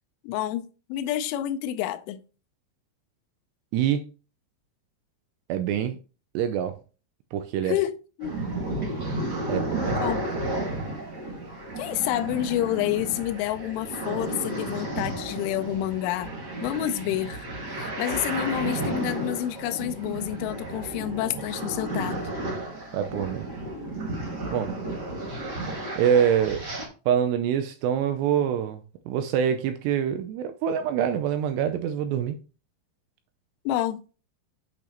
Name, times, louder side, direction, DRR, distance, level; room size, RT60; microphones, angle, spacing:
voice 1, 0.2-2.2 7.6-8.3 9.9-10.2 11.8-16.3 16.6-22.2 33.7-34.0, left 13 dB, 85° left, 3.1 m, -29 dB
voice 2, 3.7-4.0 5.5-6.0 6.3-6.8 7.3-7.8 9.5-10.1 22.9-23.5 24.5-24.7 26.0-26.6 27.1-28.8 29.1-32.4, right 9 dB, 85° right, 2.4 m, -25 dB
sound 1, 8.2-26.9, right 1 dB, 65° right, 1.0 m, -32 dB
8.2 x 6.0 x 2.9 m
omnidirectional pair, 5.5 m